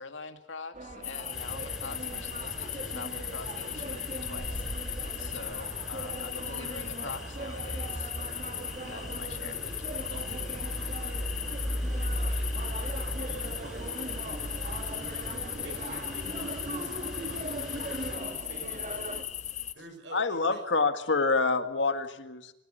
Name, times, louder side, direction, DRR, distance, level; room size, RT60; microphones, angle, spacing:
voice 1, 0.0-8.1 8.8-10.0, left 4 dB, 90° left, 7 dB, 2.4 m, -45 dB
sound 1, 0.7-19.2, right 2 dB, 40° right, 2.6 m, -40 dB
sound 2, 1.0-19.7, left 10 dB, 40° left, 1.3 m, -38 dB
sound 3, 1.3-18.2, equal, 5° right, 5.4 m, -38 dB
voice 2, 10.1-20.6, right 2 dB, 70° right, 6 dB, 6.4 m, -50 dB
voice 3, 20.1-22.5, left 4 dB, 75° left, 9 dB, 1.8 m, -27 dB
27.0 x 15.0 x 9.1 m, 0.85 s
head